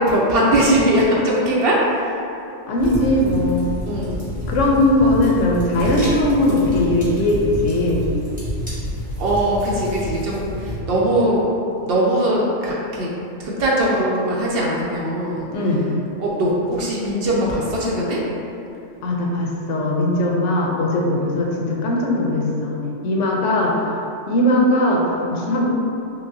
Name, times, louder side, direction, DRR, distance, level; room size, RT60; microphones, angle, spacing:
voice 1, 0.0-2.2 3.8-4.2 9.2-11.4 11.8-13.1 13.4-15.5 16.2-18.2, right 1 dB, 60° right, -4 dB, 0.8 m, -20 dB
voice 2, 2.7-3.7 4.5-8.1 15.5-15.8 19.0-22.8 23.0-23.9 24.3-25.7, left 1 dB, 85° left, -1 dB, 0.9 m, -19 dB
sound 1, 2.8-10.8, equal, 5° right, 1.0 m, -29 dB
5.8 x 2.2 x 2.6 m, 2.7 s
omnidirectional pair, 1.2 m